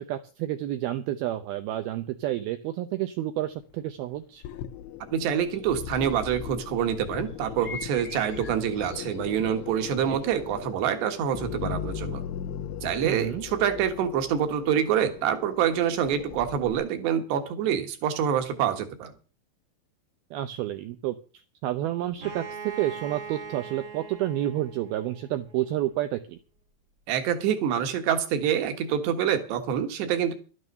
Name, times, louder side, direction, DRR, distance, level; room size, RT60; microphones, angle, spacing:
voice 1, 0.0-4.4 10.1-10.2 13.0-13.4 20.3-21.2 21.6-26.4, right 13 dB, 85° right, 10 dB, 2.1 m, -30 dB
sound 1, 4.4-16.8, left 10 dB, 85° left, 3.2 m, -38 dB
voice 2, 5.1-12.2 12.8-19.1 27.1-30.3, right 9 dB, 70° right, 7 dB, 3.5 m, -26 dB
sound 2, 5.5-6.7 7.1-9.8, left 4 dB, 65° left, 0.6 m, -44 dB
Bowed string instrument, 22.2-25.9, right 5 dB, 35° right, 1.7 m, -41 dB
12.5 x 9.6 x 6.8 m, 0.36 s
omnidirectional pair, 5.4 m